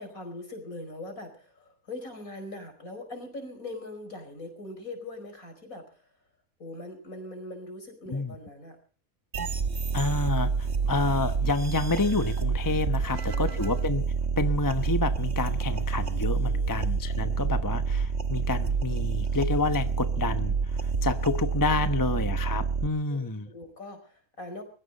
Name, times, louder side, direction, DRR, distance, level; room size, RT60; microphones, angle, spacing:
voice 1, 0.0-6.1 6.6-8.8 10.6-10.8 12.9-13.7 16.2-16.8 17.2-17.5 23.1-23.2 23.5-24.6, left 2 dB, 65° left, 7 dB, 5.4 m, -42 dB
sound 1, 9.3-22.9, right 5 dB, 50° right, 1.5 m, -28 dB
voice 2, 9.9-14.0 14.4-23.5, left 3 dB, 15° left, 9 dB, 0.9 m, -29 dB
22.0 x 15.5 x 4.1 m, 0.42 s
omnidirectional pair, 1.6 m